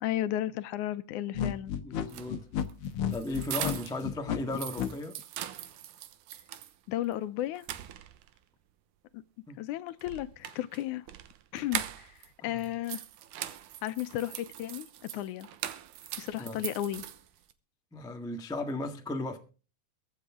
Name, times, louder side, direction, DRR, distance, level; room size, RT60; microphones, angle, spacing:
voice 1, 0.0-1.8 6.9-7.7 9.1-9.2 9.6-11.0 11.5-12.1 12.4-13.0 13.8-14.9 15.1-15.5 16.2-17.1, left 13 dB, 80° left, 2.2 m, -33 dB
sound 1, 1.3-4.9, left 8 dB, 60° left, 1.6 m, -32 dB
voice 2, 1.8-2.5 3.1-5.2 9.5-9.6 12.4-12.6 16.4-16.6 17.9-19.4, left 2 dB, 5° left, 0.4 m, -36 dB
sound 2, 2.0-4.1 4.4-6.7 7.1-7.2 7.6-8.4 10.0-12.3 12.6-17.5, right 12 dB, 90° right, 2.5 m, -41 dB
22.5 x 8.2 x 3.7 m
omnidirectional pair, 3.5 m